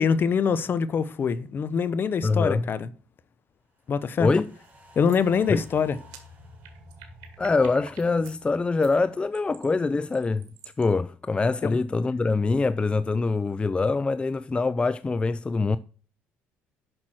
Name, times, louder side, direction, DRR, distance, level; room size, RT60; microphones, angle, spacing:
voice 1, 0.0-2.9 3.9-4.3 5.0-6.0 11.6-11.8, left 6 dB, 40° left, 0.8 m, -24 dB
voice 2, 2.2-2.7 4.2-4.5 5.5-5.6 7.4-10.5 10.8-15.8, left 3 dB, 20° left, 0.4 m, -24 dB
sound 1, 3.9-10.3 10.6-10.7, left 1 dB, 30° right, 3.5 m, -51 dB
sound 2, 4.6-4.8 5.1-5.2 5.6-8.4 8.8-10.8, right 10 dB, 85° right, 1.8 m, -49 dB
7.6 x 6.1 x 6.2 m
supercardioid pair, 80°, 5 cm